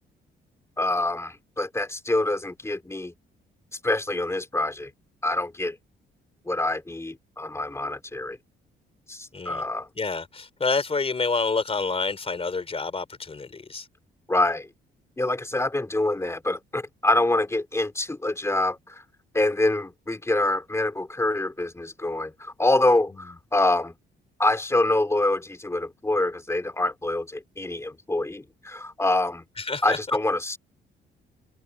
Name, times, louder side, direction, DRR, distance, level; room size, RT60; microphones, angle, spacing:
voice 1, 0.8-3.1 3.8-4.9 5.2-5.8 6.5-8.4 9.1-9.9 14.3-14.7 15.2-19.0 19.3-23.9 24.4-29.4 29.8-30.6, left 2 dB, 15° left, 2.8 m, -25 dB
voice 2, 9.3-9.6 10.0-13.9 29.6-30.0, left 4 dB, 30° left, 3.6 m, -28 dB
cardioid pair, 90°, 20 cm